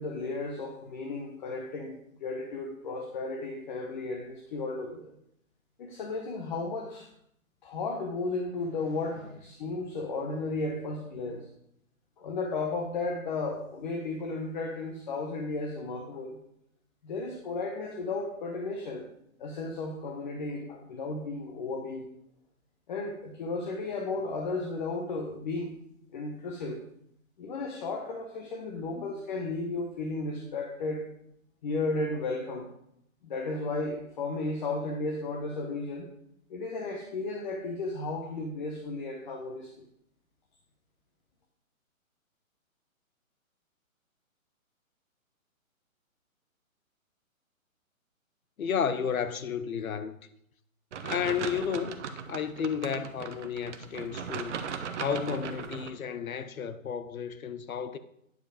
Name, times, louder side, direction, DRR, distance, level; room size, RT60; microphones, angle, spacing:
voice 1, 0.0-5.1 5.8-7.1 7.6-11.5 12.2-16.4 17.0-19.1 19.4-22.1 22.9-25.7 26.1-26.8 27.4-31.0 31.6-32.7 33.2-36.1 36.5-39.8, left 3 dB, 35° left, 0.9 m, -34 dB
voice 2, 48.6-50.2 51.0-52.0 52.3-54.6 55.0-58.0, left 7 dB, 75° left, 0.8 m, -32 dB
sound 1, 50.9-55.9, right 6 dB, 55° right, 0.8 m, -38 dB
9.2 x 5.0 x 5.0 m
hypercardioid pair, 155°, 42 cm